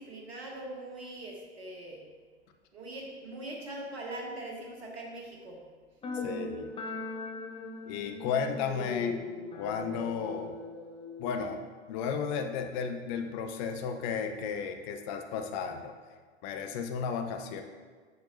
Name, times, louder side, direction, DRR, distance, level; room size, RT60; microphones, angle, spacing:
voice 1, 0.0-2.0 2.7-5.6, right 1 dB, 70° right, -1 dB, 1.4 m, -41 dB
sound 1, 6.0-11.6, left 4 dB, 15° left, 1.0 m, -39 dB
voice 2, 6.1-6.7 7.9-9.2 9.5-10.5 11.2-11.6 11.9-15.9 16.4-17.6, left 6 dB, 40° left, 6 dB, 0.8 m, -34 dB
9.3 x 6.2 x 2.7 m, 1.5 s
figure-of-eight pair, 90°, 33 cm